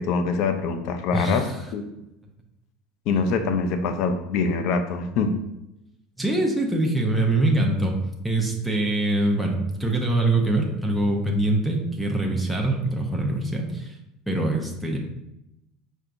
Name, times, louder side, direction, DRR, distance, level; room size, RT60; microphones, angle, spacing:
voice 1, 0.0-1.8 3.1-5.3, left 4 dB, 60° left, 8 dB, 0.5 m, -24 dB
voice 2, 1.1-1.6 6.2-8.0 8.2-14.0 14.3-15.0, right 2 dB, ahead, -1 dB, 0.7 m, -24 dB
4.6 x 4.4 x 2.6 m, 0.87 s
supercardioid pair, 120°, 0 cm